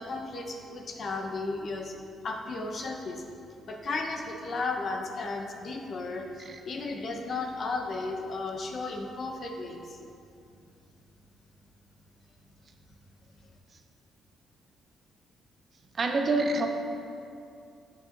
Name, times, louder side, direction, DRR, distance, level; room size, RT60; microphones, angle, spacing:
voice 1, 0.0-1.9 2.2-3.2 3.7-10.0, left 3 dB, 50° left, 2 dB, 0.9 m, -34 dB
voice 2, 15.9-16.7, right 2 dB, 45° right, 3 dB, 0.8 m, -26 dB
10.5 x 7.9 x 2.6 m, 2.6 s
cardioid pair, 90°, 0 cm